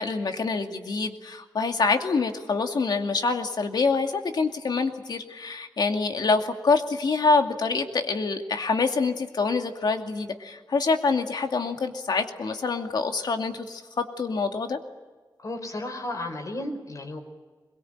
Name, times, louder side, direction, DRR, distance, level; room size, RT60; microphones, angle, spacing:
voice 1, 0.0-14.8, left 4 dB, 70° left, 5 dB, 2.4 m, -26 dB
voice 2, 15.4-17.2, left 1 dB, 50° left, 5 dB, 4.8 m, -33 dB
23.0 x 22.5 x 9.0 m, 1.3 s
wide cardioid pair, 115°, 7 cm